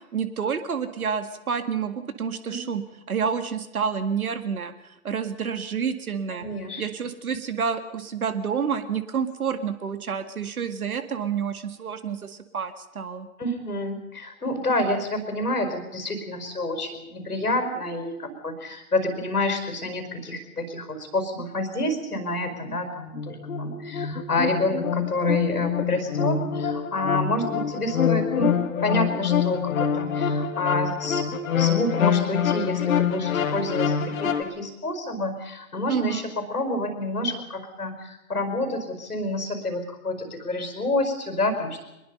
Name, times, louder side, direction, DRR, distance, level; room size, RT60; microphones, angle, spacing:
voice 1, 0.1-2.8 3.1-6.5 6.8-13.3 35.9-36.3, right 6 dB, 70° right, 10 dB, 2.1 m, -29 dB
voice 2, 6.4-6.8 13.4-28.5 28.8-31.2 31.5-41.9, left 1 dB, 85° left, 7 dB, 4.9 m, -28 dB
sound 1, 23.2-34.4, left 7 dB, 60° left, 2.3 m, -25 dB
24.0 x 21.0 x 5.5 m, 0.94 s
figure-of-eight pair, 110°, 45 cm